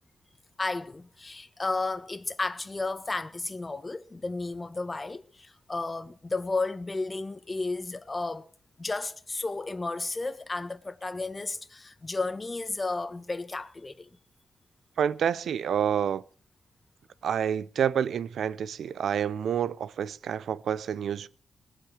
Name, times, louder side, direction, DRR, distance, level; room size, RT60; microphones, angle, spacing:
voice 1, 0.6-8.5 8.8-14.1, left 3 dB, 30° left, 1.5 m, -33 dB
voice 2, 15.0-16.2 17.2-21.3, right 8 dB, 80° right, 0.7 m, -28 dB
19.5 x 8.3 x 7.3 m
cardioid pair, 65°, 0 cm